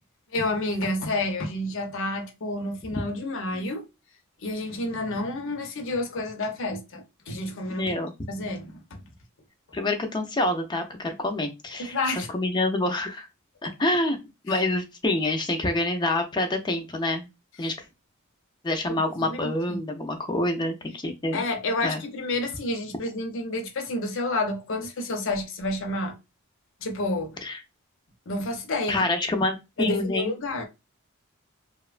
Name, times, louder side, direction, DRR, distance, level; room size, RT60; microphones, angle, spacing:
voice 1, 0.3-3.8 4.4-7.9 8.3-9.0 11.8-12.3 14.5-14.6 17.6-17.7 19.2-19.8 21.3-26.1 26.8-27.4 28.3-29.0 29.8-30.7, left 2 dB, 65° left, 0.7 m, -30 dB
voice 2, 7.8-8.1 9.7-12.0 12.3-13.3 13.6-14.2 14.4-17.3 17.6-17.7 18.6-21.4 21.8-22.0 27.4-27.6 28.9-30.3, left 2 dB, 20° left, 0.5 m, -27 dB
2.9 x 2.1 x 2.4 m
head